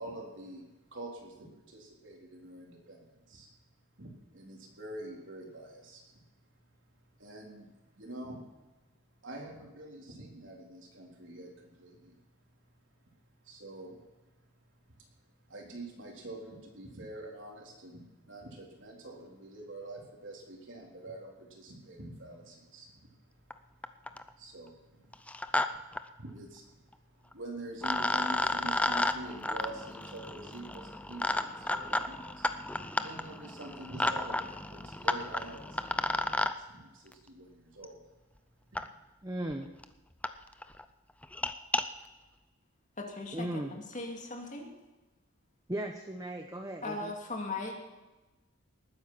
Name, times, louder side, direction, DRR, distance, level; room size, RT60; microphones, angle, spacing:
voice 1, 0.0-3.5 4.0-6.2 7.2-8.4 9.2-12.2 13.4-14.0 15.5-23.5 24.2-25.1 25.5-25.6 26.1-38.0 38.7-38.9, right 1 dB, 65° right, -1 dB, 3.8 m, -46 dB
sound 1, 23.5-23.6 23.8-24.3 25.1-25.7 25.9-26.0 27.3-27.4 27.8-36.5 37.8-37.9 38.7-38.8 39.5-39.6 39.8-39.9 40.2-40.3 40.6-40.8 41.2-41.8, left 1 dB, 5° left, 0.5 m, -32 dB
voice 2, 39.2-39.7 43.3-43.7 45.7-47.1, right 1 dB, 15° right, 4 dB, 0.9 m, -36 dB
voice 3, 43.0-44.7 46.8-47.7, left 2 dB, 35° left, 1 dB, 2.6 m, -38 dB
19.5 x 9.5 x 5.8 m, 1.1 s
head